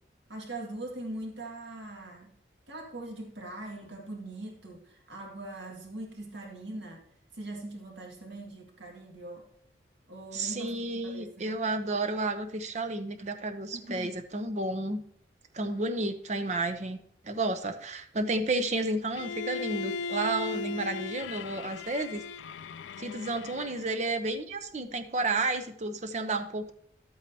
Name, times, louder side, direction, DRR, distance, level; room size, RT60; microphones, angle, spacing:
voice 1, 0.3-2.3 2.7-7.0 7.3-9.5 10.1-11.5 13.7-14.2 15.7-15.8 20.5-21.0, right 2 dB, 75° right, 1 dB, 2.0 m, -41 dB
voice 2, 10.3-15.0 15.5-17.0 17.2-22.2 23.0-26.7, right 2 dB, 40° right, 7 dB, 0.7 m, -31 dB
Bowed string instrument, 19.1-24.1, left 4 dB, 85° left, 0.3 m, -38 dB
11.5 x 8.4 x 2.8 m, 0.68 s
head